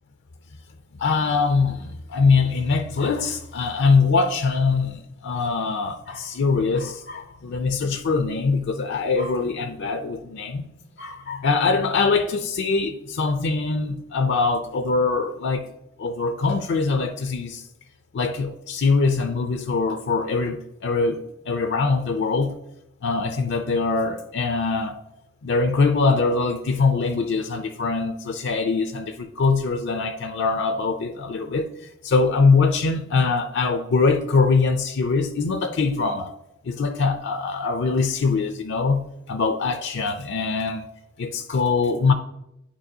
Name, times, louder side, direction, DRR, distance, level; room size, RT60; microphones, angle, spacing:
voice 1, 1.0-10.6 11.0-15.6 16.0-17.6 18.1-22.5 23.0-25.0 25.4-31.7 32.0-36.3 36.6-40.8 41.2-42.1, left 4 dB, 60° left, 0.4 m, -23 dB
10.0 x 4.6 x 2.7 m
head